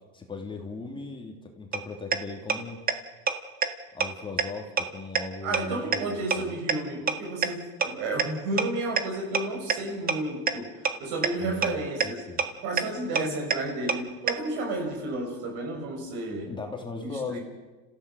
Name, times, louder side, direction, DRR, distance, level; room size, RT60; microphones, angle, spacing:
voice 1, 0.1-2.8 3.9-6.5 11.4-12.4 13.1-13.2 16.5-17.4, left 3 dB, 15° left, 2 dB, 3.1 m, -38 dB
sound 1, 1.7-1.8 2.1-2.2 2.5-2.6 2.9-3.0 3.3-3.4 3.6-3.7 4.0-4.1 4.4-4.5 4.8-4.9 5.2-5.3 5.5-5.6 5.9-6.0 6.3-6.4 6.7-6.8 7.1-7.2 7.4-7.5 7.8-7.9 8.2-8.3 8.6-8.7 9.0-9.1 9.3-9.4 9.7-9.8 10.1-10.2 10.5-10.6 10.8-10.9 11.2-11.3 11.6-11.7 12.0-12.1 12.4-12.5 12.8-12.9 13.2-13.3 13.5-13.6 13.9-14.0 14.3-14.4, right 6 dB, 25° right, 1.7 m, -23 dB
voice 2, 5.4-10.7 11.0-12.2 12.6-16.5 17.0-17.4, right 2 dB, 65° right, 2 dB, 7.4 m, -32 dB
29.5 x 15.5 x 6.5 m, 1.2 s
supercardioid pair, 120°, 32 cm